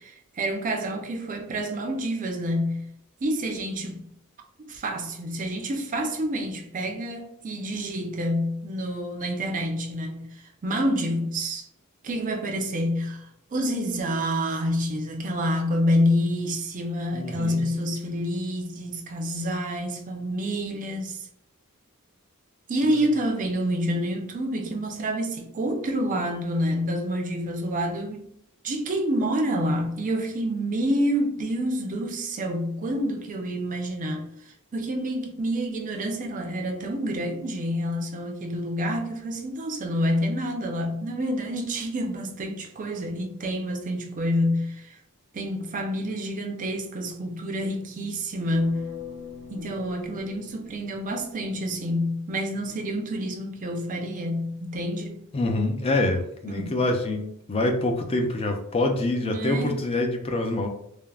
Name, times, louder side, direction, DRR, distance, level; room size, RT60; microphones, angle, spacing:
voice 1, 0.0-2.8 3.2-4.0 4.7-11.6 12.0-21.3 22.7-28.3 28.6-45.0 45.3-48.9 49.5-55.2 56.5-56.8 59.2-59.7, equal, 35° right, 0.5 m, -28 dB
voice 2, 17.1-17.6 55.3-60.7, left 2 dB, 25° left, 0.4 m, -26 dB
sound 1, 48.5-51.6, left 7 dB, 70° left, 0.7 m, -42 dB
3.3 x 2.0 x 2.3 m
head